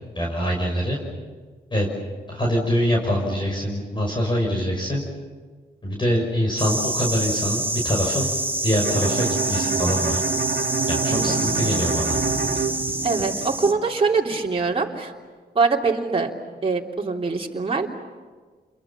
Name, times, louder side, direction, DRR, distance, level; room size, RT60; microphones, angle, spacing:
voice 1, 0.2-1.0 1.7-1.9 2.3-5.0 5.8-8.3 8.6-10.2 10.9-12.2, equal, 25° left, -1 dB, 5.9 m, -24 dB
sound 1, 6.6-13.7, right 2 dB, 10° right, 2.1 m, -27 dB
Bowed string instrument, 8.8-13.6, right 6 dB, 60° right, 1.4 m, -27 dB
sound 2, 11.1-13.9, left 1 dB, 85° left, 6.4 m, -35 dB
voice 2, 13.0-15.1 15.5-16.3 16.6-17.9, right 4 dB, 35° right, -2 dB, 3.1 m, -23 dB
29.5 x 23.0 x 7.2 m, 1.4 s
cardioid pair, 80°, 18 cm